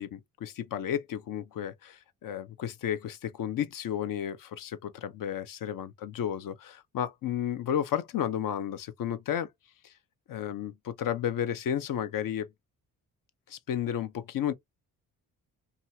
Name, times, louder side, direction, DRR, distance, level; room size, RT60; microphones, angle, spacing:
voice 1, 0.0-9.5 9.8-9.9 10.3-12.5 13.5-14.5, left 9 dB, 65° left, 0.7 m, -32 dB
2.8 x 2.4 x 2.7 m
cardioid pair, 75°, 35 cm